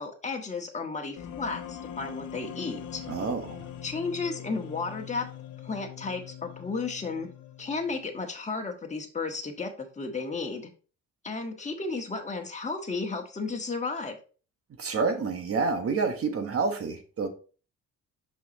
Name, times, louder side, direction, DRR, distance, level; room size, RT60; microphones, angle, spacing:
voice 1, 0.0-3.0 3.8-5.3 5.6-7.3 7.6-10.7 11.2-14.2, left 4 dB, 25° left, 1.5 m, -33 dB
sound 1, 1.2-8.2, left 10 dB, 80° left, 0.9 m, -42 dB
voice 2, 3.1-3.6 14.8-17.3, right 4 dB, 50° right, 1.4 m, -28 dB
5.9 x 5.8 x 3.0 m
cardioid pair, 90°, 30 cm